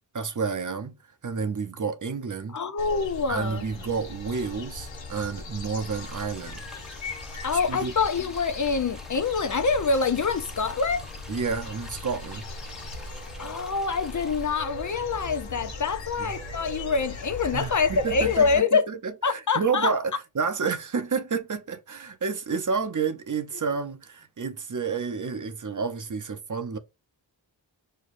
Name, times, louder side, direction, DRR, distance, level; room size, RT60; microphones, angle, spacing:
voice 1, 0.1-1.0 1.2-2.6 3.3-6.7 7.7-7.9 11.3-12.5 16.2-16.3 17.5-26.8, right 5 dB, 45° right, 0.7 m, -30 dB
voice 2, 2.5-3.6 7.4-11.0 13.4-18.8 19.2-19.9, left 4 dB, 45° left, 0.5 m, -25 dB
sound 1, 2.8-18.6, left 2 dB, 85° left, 0.8 m, -39 dB
sound 2, 5.8-14.6, equal, ahead, 0.7 m, -48 dB
6.4 x 2.3 x 2.5 m
cardioid pair, 45°, 44 cm